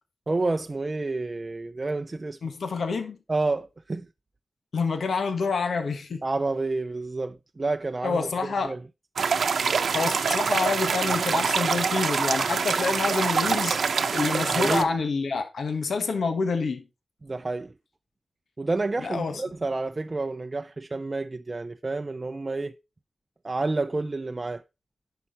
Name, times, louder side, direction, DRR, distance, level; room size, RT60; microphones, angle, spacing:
voice 1, 0.3-2.4 3.3-4.1 6.2-8.8 14.5-14.9 17.2-17.7 18.6-22.7 23.4-24.6, right 3 dB, 30° right, 0.5 m, -29 dB
voice 2, 2.4-3.2 4.7-6.2 8.0-8.7 9.9-13.8 14.1-16.8 19.0-19.4, left 4 dB, 85° left, 1.5 m, -27 dB
sound 1, 9.2-14.8, right 5 dB, 90° right, 0.9 m, -25 dB
11.0 x 5.8 x 4.3 m
wide cardioid pair, 130°, 0 cm